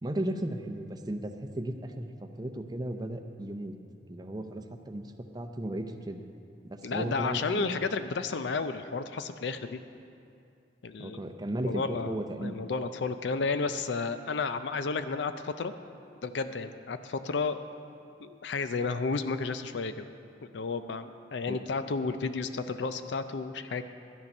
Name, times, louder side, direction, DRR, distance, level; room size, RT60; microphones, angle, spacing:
voice 1, 0.0-2.1 2.4-3.7 4.1-5.1 5.3-6.2 6.6-7.8 11.0-12.6 21.5-21.6, right 1 dB, 20° right, 5 dB, 0.6 m, -35 dB
voice 2, 6.8-9.8 10.8-11.2 11.6-15.7 16.2-17.6 18.2-20.1 20.4-23.8, left 4 dB, 70° left, 10 dB, 0.5 m, -32 dB
12.0 x 9.8 x 5.3 m, 2.5 s
head